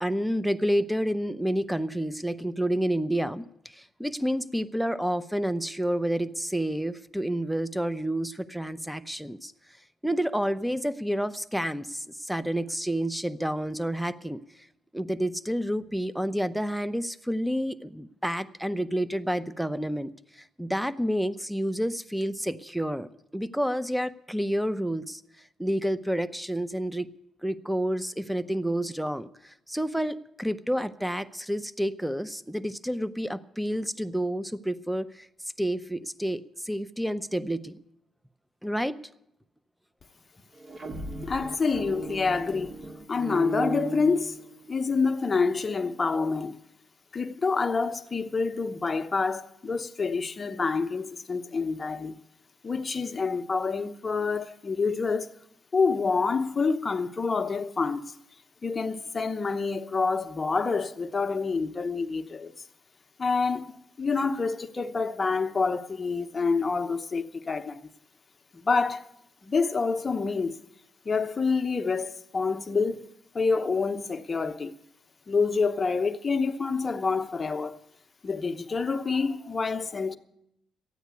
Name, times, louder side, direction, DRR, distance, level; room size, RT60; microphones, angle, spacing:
voice 1, 0.0-9.5 10.0-14.4 14.9-25.2 25.6-27.1 27.4-35.3 35.6-37.8 38.6-39.0, equal, ahead, 0.7 m, -29 dB
sound 1, 40.5-44.8, right 3 dB, 45° right, 2.1 m, -37 dB
voice 2, 41.2-42.7 43.1-44.4 44.7-46.6 47.1-52.2 52.6-55.3 55.7-58.1 58.6-62.5 63.2-63.7 64.0-67.8 68.6-69.1 69.4-70.5 71.1-73.1 73.3-74.7 75.3-77.8 78.2-80.2, left 4 dB, 30° left, 0.9 m, -27 dB
14.0 x 9.4 x 9.4 m
cardioid pair, 90°, 0 cm